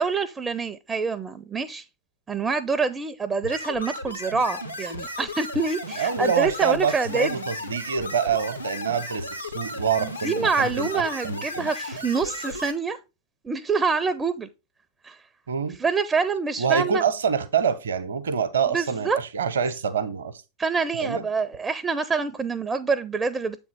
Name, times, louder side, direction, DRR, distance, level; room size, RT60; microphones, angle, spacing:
voice 1, 0.0-1.8 2.3-7.4 10.0-13.0 13.4-14.5 15.0-15.2 15.8-17.0 18.7-19.2 20.6-23.6, right 4 dB, 15° right, 0.4 m, -26 dB
sound 1, 3.4-12.7, left 1 dB, 90° left, 0.9 m, -35 dB
voice 2, 5.9-11.7 15.5-15.8 16.6-20.3 21.0-21.3, right 6 dB, 65° right, 0.7 m, -26 dB
7.4 x 3.5 x 4.6 m
figure-of-eight pair, 90°, 0 cm